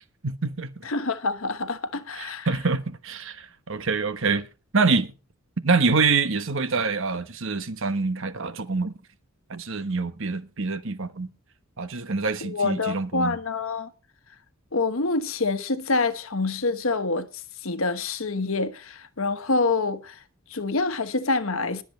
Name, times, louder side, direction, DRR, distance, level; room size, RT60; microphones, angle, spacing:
voice 1, 0.0-0.7 2.2-4.5 4.7-5.1 5.6-8.9 9.5-11.3 11.8-13.4, right 4 dB, 60° right, 1.2 m, -26 dB
voice 2, 0.8-2.5 12.4-13.9 14.7-17.3 17.6-20.2 20.5-21.8, left 3 dB, 65° left, 1.2 m, -26 dB
21.0 x 7.7 x 3.1 m
head